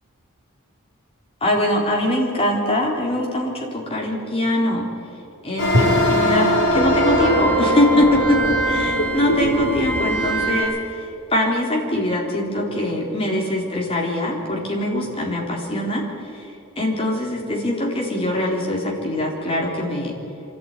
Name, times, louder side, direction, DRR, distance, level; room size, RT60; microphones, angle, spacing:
voice 1, 1.4-4.9 5.4-11.0 11.3-16.0 16.3-16.5 16.8-20.1, left 1 dB, 25° left, -2 dB, 4.1 m, -22 dB
sound 1, 5.6-10.6, equal, 55° left, 6.5 m, -20 dB
Drum, 5.7-9.7, left 1 dB, 75° right, 2.9 m, -28 dB
25.0 x 14.0 x 9.3 m, 2.6 s
head